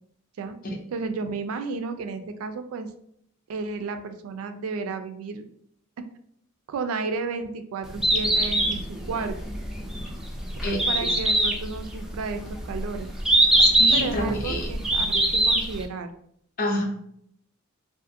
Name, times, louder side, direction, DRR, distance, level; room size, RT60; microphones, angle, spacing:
voice 1, 0.9-2.9 3.5-5.4 6.7-9.4 10.9-13.1 13.9-16.1, right 4 dB, 80° right, 8 dB, 0.3 m, -32 dB
Bird, 7.8-15.8, right 1 dB, ahead, 0.3 m, -22 dB
voice 2, 10.6-11.1 13.6-14.7 16.6-16.8, left 1 dB, 45° left, 1 dB, 0.6 m, -28 dB
2.4 x 2.4 x 2.6 m, 0.69 s
head